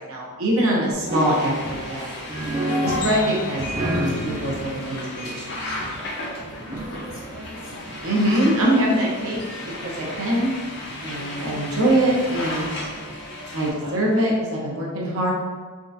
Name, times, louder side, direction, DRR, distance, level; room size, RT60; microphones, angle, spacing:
voice 1, 0.0-2.1 2.8-5.6 8.0-9.4 9.8-10.5 11.0-12.8 13.5-15.3, right 1 dB, 75° right, -4 dB, 0.8 m, -23 dB
sound 1, 0.9-14.2, equal, 20° right, 0.5 m, -32 dB
sound 2, 1.1-13.7, left 2 dB, 50° left, 0.6 m, -35 dB
voice 2, 2.6-3.1 4.2-4.3 4.6-4.8 6.1-7.9 8.3-8.4 11.2-11.6, left 1 dB, 75° left, -6 dB, 1.1 m, -39 dB
3.6 x 2.4 x 2.6 m, 1.5 s
head